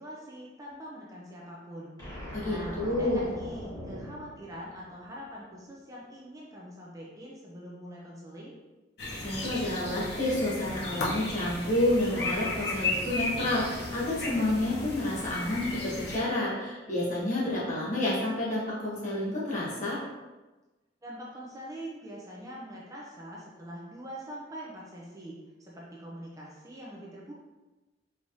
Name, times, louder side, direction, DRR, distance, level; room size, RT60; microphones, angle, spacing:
voice 1, 0.0-1.9 2.4-8.6 21.0-27.4, equal, 20° right, -4 dB, 0.6 m, -43 dB
sound 1, 2.0-5.3, equal, 20° left, 1.4 m, -42 dB
voice 2, 2.3-3.2 9.2-20.0, left 1 dB, 40° left, -7 dB, 1.4 m, -29 dB
sound 2, 9.0-16.2, left 2 dB, 60° left, 0.9 m, -34 dB
4.5 x 3.4 x 2.7 m, 1.1 s
head